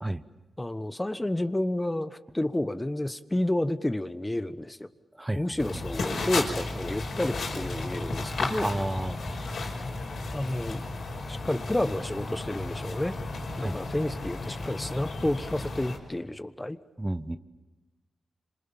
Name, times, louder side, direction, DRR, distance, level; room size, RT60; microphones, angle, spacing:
voice 1, 0.6-4.9 5.3-8.7 10.3-10.8 11.3-13.2 13.6-16.8, left 1 dB, 15° left, 11 dB, 1.2 m, -30 dB
voice 2, 5.2-5.6 8.6-9.4 13.6-13.8 17.0-17.4, right 1 dB, 15° right, 11 dB, 1.1 m, -31 dB
sound 1, 5.6-16.0, left 2 dB, 80° left, 5.7 m, -34 dB
27.5 x 26.5 x 7.2 m, 1.2 s
cardioid pair, 70°, 0 cm